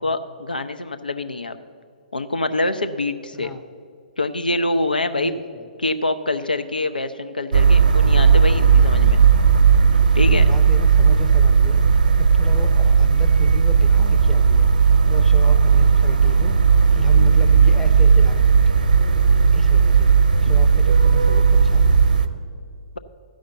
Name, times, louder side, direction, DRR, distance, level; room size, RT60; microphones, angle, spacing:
voice 1, 0.0-1.6 2.1-3.5 4.2-5.4 5.8-9.2 10.1-10.4, left 2 dB, 80° left, 8 dB, 0.6 m, -25 dB
voice 2, 5.2-5.7 10.2-14.7 15.1-16.6 16.9-18.9 19.5-22.0, left 2 dB, 5° left, 4 dB, 0.7 m, -35 dB
sound 1, 7.5-22.3, right 6 dB, 65° right, 0.8 m, -15 dB
14.0 x 5.1 x 7.8 m, 2.2 s
figure-of-eight pair, 120°, 5 cm